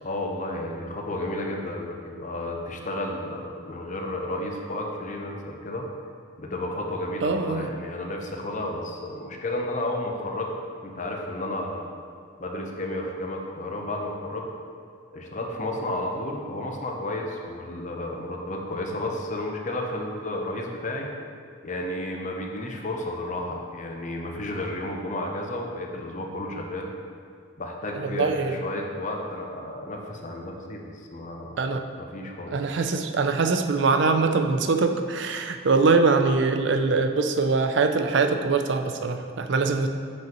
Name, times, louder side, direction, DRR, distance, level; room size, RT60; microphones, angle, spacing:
voice 1, 0.0-5.8 6.4-10.5 10.8-11.9 12.4-14.5 15.1-21.1 21.6-26.9 27.6-31.6 32.0-32.6, left 1 dB, 40° left, 1 dB, 0.7 m, -32 dB
voice 2, 7.2-7.7 27.9-28.5 31.6-31.8 32.5-39.9, right 4 dB, 65° right, 7 dB, 0.4 m, -23 dB
7.2 x 6.0 x 3.0 m, 2.1 s
head